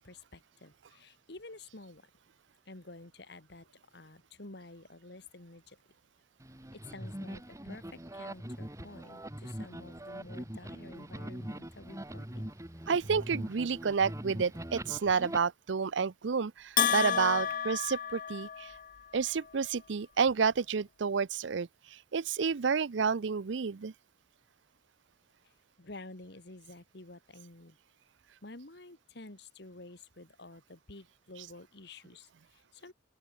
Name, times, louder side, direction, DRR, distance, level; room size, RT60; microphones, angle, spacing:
voice 1, 0.0-2.1 2.7-5.8 6.7-12.5 25.4-25.5 25.8-27.8 28.4-32.9, left 2 dB, 60° left, 2.3 m, -50 dB
sound 1, 6.4-15.4, right 1 dB, 15° right, 2.0 m, -42 dB
voice 2, 12.9-18.7 19.1-21.7 22.1-23.9, right 5 dB, 75° right, 0.5 m, -30 dB
Bell, 16.8-18.9, left 9 dB, 45° left, 0.5 m, -31 dB
open air
head